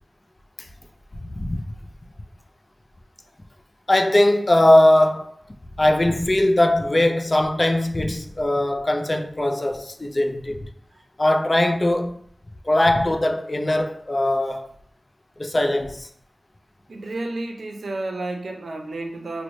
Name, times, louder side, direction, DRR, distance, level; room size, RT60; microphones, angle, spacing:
voice 1, 1.3-1.6 3.9-5.4 5.8-10.6 11.2-12.2 12.7-14.7 15.4-16.1, left 1 dB, 30° left, 0.3 m, -20 dB
voice 2, 16.9-19.4, right 2 dB, 85° right, 0.5 m, -31 dB
3.9 x 2.1 x 3.1 m
wide cardioid pair, 70°, 0 cm